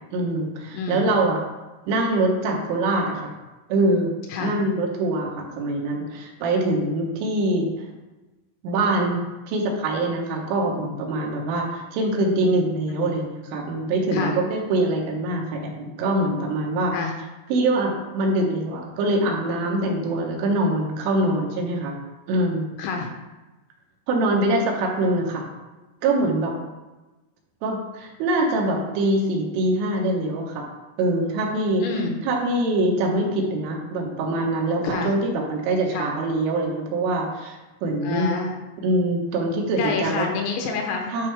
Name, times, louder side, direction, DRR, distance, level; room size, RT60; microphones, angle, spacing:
voice 1, 0.1-1.4 1.9-3.3 3.7-4.1 4.4-7.7 8.6-9.2 9.5-17.0 17.5-22.0 22.3-22.7 24.1-25.5 26.0-26.5 27.6-30.7 31.0-31.8 32.2-38.3 38.8-40.3 41.1-41.3, right 2 dB, 80° right, 0 dB, 3.5 m, -24 dB
voice 2, 0.7-1.1 4.3-4.5 12.9-13.2 14.1-14.3 16.9-17.1 22.8-23.1 31.8-32.2 34.8-35.1 35.9-36.1 38.0-38.5 39.8-41.1, left 4 dB, 80° left, 2 dB, 2.9 m, -27 dB
11.0 x 4.4 x 3.3 m, 1.1 s
omnidirectional pair, 5.6 m